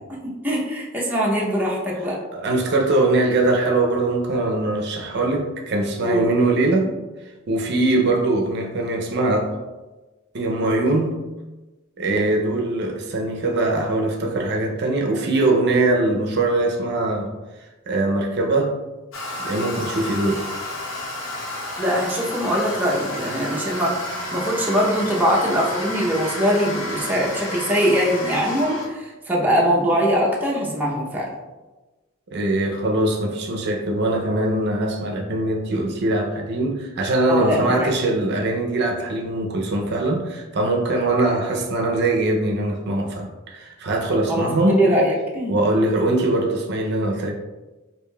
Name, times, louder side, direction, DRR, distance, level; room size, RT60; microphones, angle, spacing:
voice 1, 0.1-2.2 6.0-6.3 21.8-31.3 37.3-37.9 44.3-45.6, equal, 10° right, -4 dB, 0.6 m, -22 dB
voice 2, 2.3-7.0 7.5-9.5 10.3-11.2 12.0-17.3 17.6-18.8 19.4-20.5 32.3-44.9 45.5-47.3, right 2 dB, 55° right, 1 dB, 0.5 m, -22 dB
Toilet flush, 19.1-28.9, left 1 dB, 75° left, 0.8 m, -31 dB
4.9 x 2.6 x 2.2 m, 1.2 s
head